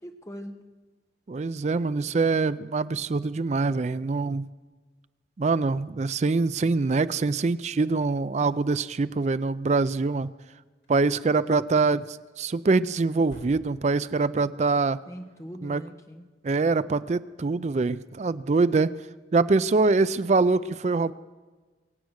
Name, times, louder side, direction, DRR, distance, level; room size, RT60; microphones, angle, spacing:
voice 1, 0.0-0.6 8.4-8.7 15.1-16.3, equal, 15° left, 5 dB, 1.1 m, -41 dB
voice 2, 1.3-4.5 5.4-10.3 10.9-15.0 15.6-15.8 16.4-18.9 19.3-21.1, right 3 dB, 35° right, 15 dB, 0.4 m, -24 dB
sound 1, 10.8-11.0 13.0-14.1, equal, 65° left, 3.1 m, -49 dB
24.0 x 8.3 x 6.4 m, 1.3 s
head